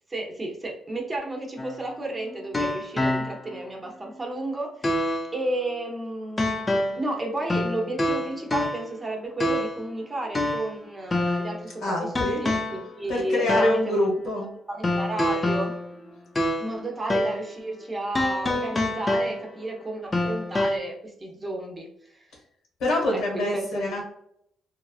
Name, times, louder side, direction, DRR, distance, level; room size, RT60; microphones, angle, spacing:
voice 1, 0.1-14.1 14.7-15.8 16.6-22.3 23.1-23.9, right 2 dB, 25° right, 1 dB, 0.7 m, -32 dB
sound 1, 1.6-3.6 4.1-4.2 4.8-5.4 6.4-7.1 7.5-9.0 9.4-9.9 10.3-11.6 12.2-12.9 13.5-13.9 14.8-16.8 17.1-17.5 18.2-19.7 20.1-20.8, left 1 dB, 25° left, 0.4 m, -26 dB
voice 2, 11.8-12.4 13.1-14.5 22.8-24.0, left 1 dB, 75° left, -2 dB, 1.3 m, -25 dB
3.0 x 2.3 x 2.4 m, 0.72 s
cardioid pair, 90°, 0 cm